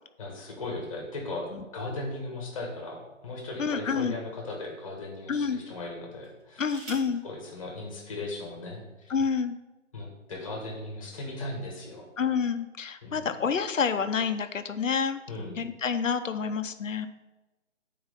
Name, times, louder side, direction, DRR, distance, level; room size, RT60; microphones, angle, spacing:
voice 1, 0.2-6.8 7.2-9.1 9.9-12.1 13.0-13.3 15.3-15.6, left 2 dB, 25° left, 0 dB, 1.5 m, -37 dB
sound 1, 3.2-3.7 4.4-4.5 6.2-7.2 8.4-8.5 8.8-9.2, right 1 dB, 65° right, 2.9 m, -48 dB
voice 2, 3.6-4.2 5.3-5.6 6.6-7.2 9.1-9.6 12.2-15.2 15.6-17.1, left 6 dB, 80° left, 9 dB, 0.8 m, -28 dB
7.3 x 4.7 x 5.4 m, 1.1 s
hypercardioid pair, 160°, 38 cm